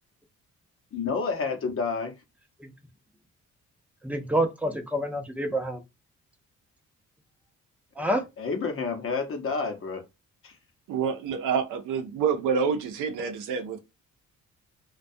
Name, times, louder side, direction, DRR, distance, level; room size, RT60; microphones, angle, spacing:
voice 1, 0.9-2.2 8.0-8.1 8.4-10.1 10.4-10.6, left 4 dB, 45° left, 0.7 m, -30 dB
voice 2, 4.0-5.8 8.0-8.2, right 1 dB, 5° right, 0.5 m, -27 dB
voice 3, 10.9-13.8, right 6 dB, 85° right, 0.6 m, -27 dB
2.2 x 2.2 x 2.6 m
cardioid pair, 90°, 30 cm